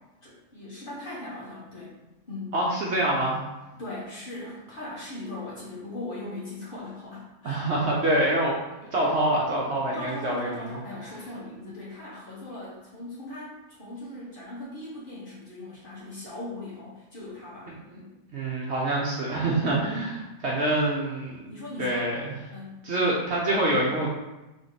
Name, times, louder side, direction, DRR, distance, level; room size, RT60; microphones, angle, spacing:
voice 1, 0.2-1.9 2.3-2.5 3.7-7.9 9.8-18.1 21.5-22.1 22.5-22.8, left 2 dB, 40° left, -8 dB, 1.6 m, -39 dB
voice 2, 2.5-3.4 7.4-8.6 8.9-10.8 18.3-21.5 21.8-22.3 22.8-24.1, right 1 dB, 55° right, -3 dB, 0.9 m, -26 dB
3.5 x 3.5 x 4.1 m, 1.0 s
omnidirectional pair, 1.5 m